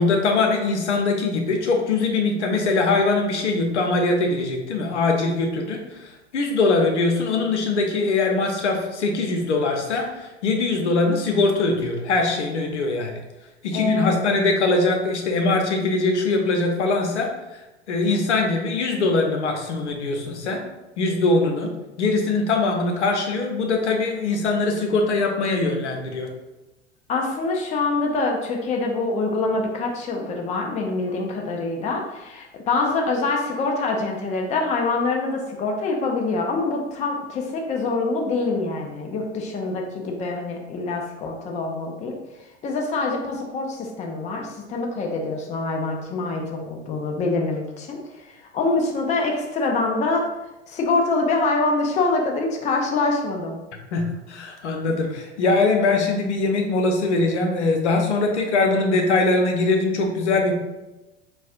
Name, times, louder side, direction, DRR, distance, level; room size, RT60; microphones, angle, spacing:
voice 1, 0.0-13.2 13.6-17.6 17.9-20.6 21.0-21.7 22.0-26.3 53.9-60.5, left 3 dB, 75° left, 2 dB, 0.7 m, -22 dB
voice 2, 13.7-14.2 27.1-42.1 42.6-50.3 50.7-53.6, left 3 dB, 20° left, 1 dB, 0.5 m, -25 dB
4.0 x 2.2 x 2.4 m, 1.0 s
figure-of-eight pair, 85°, 35 cm